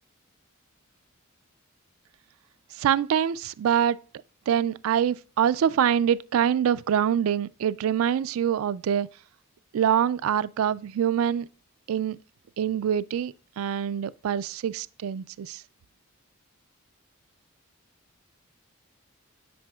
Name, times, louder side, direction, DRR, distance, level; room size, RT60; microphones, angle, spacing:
voice 1, 2.8-4.0 4.5-9.1 9.7-11.5 11.9-12.2 12.6-15.6, right 9 dB, 75° right, 0.3 m, -25 dB
8.7 x 4.8 x 2.3 m
head